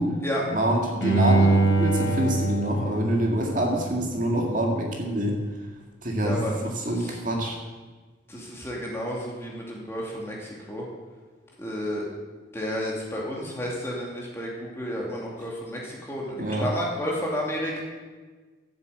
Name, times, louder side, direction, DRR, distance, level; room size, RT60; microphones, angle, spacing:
voice 1, 0.5-5.4 6.0-7.6 16.4-16.7, right 1 dB, 40° right, 0 dB, 2.1 m, -26 dB
Bowed string instrument, 1.0-4.1 4.5-4.6, right 2 dB, 75° left, 4.8 m, -24 dB
voice 2, 6.2-6.6 6.8-7.2 8.3-10.9 11.6-12.1 12.5-17.8, equal, 15° left, -3 dB, 2.6 m, -31 dB
12.0 x 8.1 x 8.1 m, 1.4 s
head